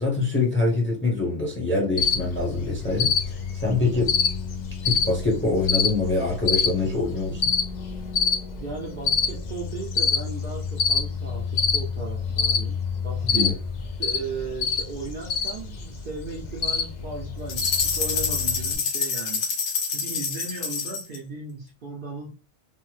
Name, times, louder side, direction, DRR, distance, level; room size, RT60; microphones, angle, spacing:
voice 1, 0.0-4.1 4.8-7.5 13.3-13.5, left 3 dB, 10° left, 0.6 m, -25 dB
Cricket, 2.0-18.8, left 5 dB, 60° left, 0.4 m, -27 dB
voice 2, 8.6-13.5 14.0-19.5 19.9-22.3, right 4 dB, 55° right, 0.7 m, -36 dB
sound 1, 17.5-21.2, left 5 dB, 85° left, 1.1 m, -27 dB
3.2 x 2.1 x 3.1 m
omnidirectional pair, 1.3 m